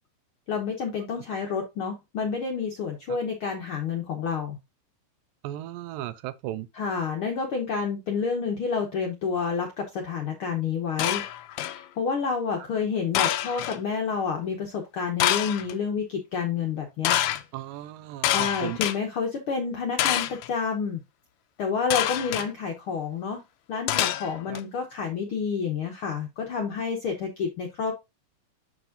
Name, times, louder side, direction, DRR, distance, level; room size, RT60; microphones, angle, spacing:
voice 1, 0.5-4.6 6.7-11.2 11.7-17.2 18.3-21.0 21.6-23.4 23.7-27.9, left 5 dB, 75° left, 1.2 m, -29 dB
voice 2, 5.4-6.7 17.5-18.8 24.5-24.6, right 14 dB, 90° right, 2.3 m, -36 dB
sound 1, 11.0-11.8 13.1-13.8 15.2-15.7 17.0-17.4 18.2-19.0 20.0-20.5 21.9-22.5 23.9-24.6, left 13 dB, 90° left, 1.5 m, -26 dB
7.0 x 6.1 x 2.6 m
omnidirectional pair, 3.9 m